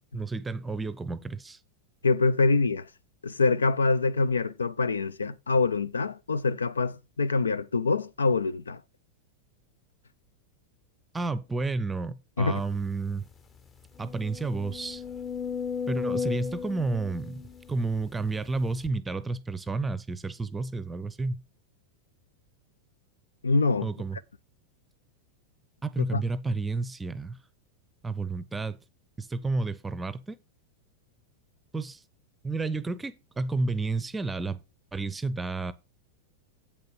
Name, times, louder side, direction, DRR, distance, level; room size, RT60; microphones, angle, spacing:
voice 1, 0.1-1.6 11.1-13.3 14.0-15.0 15.9-21.4 23.8-24.2 25.8-27.4 28.0-28.8 29.2-30.4 31.7-32.0 32.4-34.6 34.9-35.7, right 3 dB, 10° right, 0.7 m, -31 dB
voice 2, 2.0-2.9 3.2-8.8 12.4-12.6 23.4-23.9 26.1-26.2, left 3 dB, 75° left, 0.4 m, -25 dB
sound 1, 12.8-12.9 13.3-13.4 13.9-18.2 18.8-18.9, left 6 dB, 20° left, 0.9 m, -35 dB
8.3 x 6.7 x 4.7 m
figure-of-eight pair, 90°, 0 cm